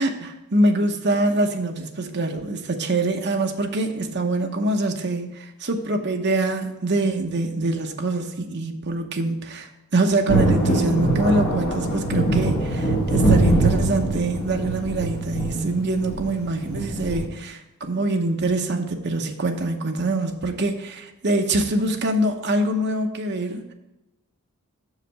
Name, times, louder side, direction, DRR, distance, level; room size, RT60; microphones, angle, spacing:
voice 1, 0.0-23.7, right 2 dB, 50° right, 4 dB, 0.8 m, -24 dB
Thunder, 10.3-17.3, right 1 dB, 45° left, 1.5 m, -23 dB
6.4 x 4.9 x 6.8 m, 0.97 s
head